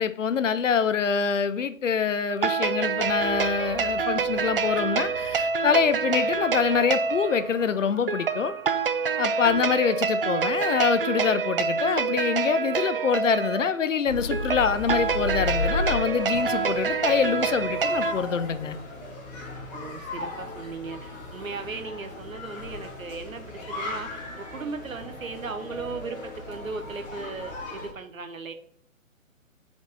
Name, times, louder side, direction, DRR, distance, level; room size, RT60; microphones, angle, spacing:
voice 1, 0.0-8.5 9.2-18.8, left 6 dB, 65° left, 0.7 m, -25 dB
sound 1, 2.3-18.1, right 5 dB, 45° right, 0.4 m, -27 dB
sound 2, 2.9-9.6, right 2 dB, 25° right, 1.2 m, -48 dB
sound 3, 14.0-27.9, left 2 dB, 30° left, 2.3 m, -35 dB
voice 2, 19.7-28.5, right 4 dB, 75° right, 1.1 m, -37 dB
5.2 x 5.0 x 4.0 m
figure-of-eight pair, 140°, 41 cm